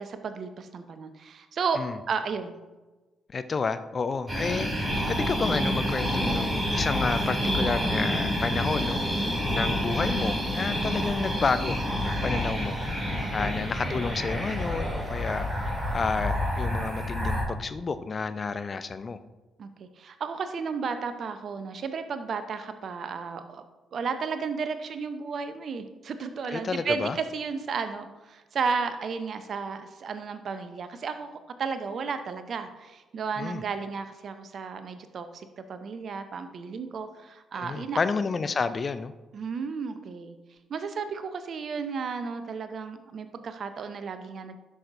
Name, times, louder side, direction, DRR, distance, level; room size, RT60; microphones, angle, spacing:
voice 1, 0.0-2.6 13.2-13.5 19.6-23.6 23.9-31.3 31.6-38.0 39.3-40.3 40.7-44.6, right 5 dB, 50° right, 10 dB, 0.7 m, -33 dB
voice 2, 3.3-19.2 26.5-27.2 33.4-33.6 37.5-39.1, left 4 dB, 40° left, 12 dB, 0.5 m, -30 dB
sound 1, 4.3-17.4, equal, 15° right, 2.7 m, -28 dB
11.5 x 6.3 x 2.6 m, 1.2 s
figure-of-eight pair, 40°, 0 cm